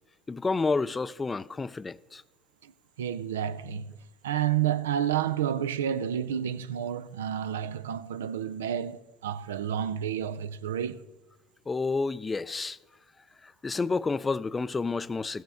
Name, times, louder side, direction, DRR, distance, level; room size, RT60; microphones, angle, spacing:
voice 1, 0.3-2.2 11.7-12.8 13.4-15.4, left 4 dB, 20° left, 0.3 m, -30 dB
voice 2, 3.0-4.0 4.2-11.0, right 9 dB, 85° right, 0.4 m, -30 dB
14.5 x 9.1 x 3.5 m
hypercardioid pair, 75°, 0 cm